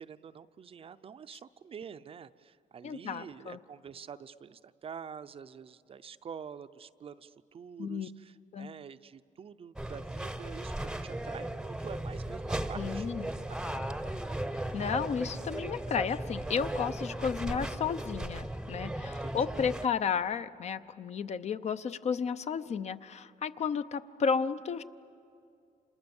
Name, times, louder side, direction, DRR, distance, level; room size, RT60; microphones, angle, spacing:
voice 1, 0.0-13.3 13.6-13.8 19.2-19.3, right 7 dB, 40° right, 12 dB, 0.6 m, -47 dB
voice 2, 2.8-3.6 7.8-8.1 8.5-8.7 12.8-13.3 14.7-24.8, left 6 dB, 50° left, 12 dB, 0.7 m, -33 dB
sound 1, 9.8-19.9, right 1 dB, 5° right, 0.8 m, -36 dB
30.0 x 27.0 x 7.1 m, 2.4 s
cardioid pair, 130°, 15 cm